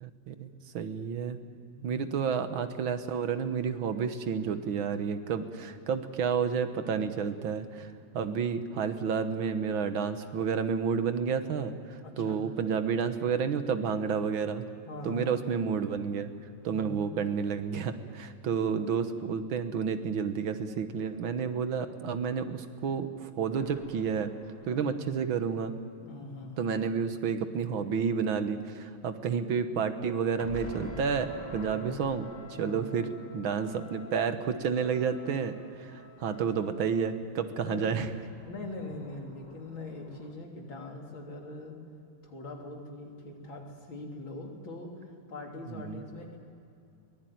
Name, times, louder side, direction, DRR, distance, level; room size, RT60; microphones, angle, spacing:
voice 1, 0.0-1.4 1.8-14.6 15.0-16.3 16.6-24.3 24.6-25.7 26.6-32.3 32.6-33.1 33.3-38.1 45.7-46.0, right 6 dB, 75° right, 9 dB, 2.0 m, -30 dB
voice 2, 1.8-2.1 12.0-12.5 14.9-15.5 16.7-17.1 24.7-25.0 26.0-26.8 31.7-32.0 32.6-32.9 37.6-37.9 38.4-41.8 42.2-46.4, left 2 dB, 70° left, 0 dB, 3.9 m, -42 dB
sound 1, 23.5-26.3 30.4-36.6 37.9-40.3, left 2 dB, 20° left, 2.1 m, -50 dB
Wind instrument woodwind instrument, 30.6-37.2, left 4 dB, 45° left, 1.4 m, -52 dB
23.0 x 20.0 x 9.3 m, 2.6 s
omnidirectional pair, 2.2 m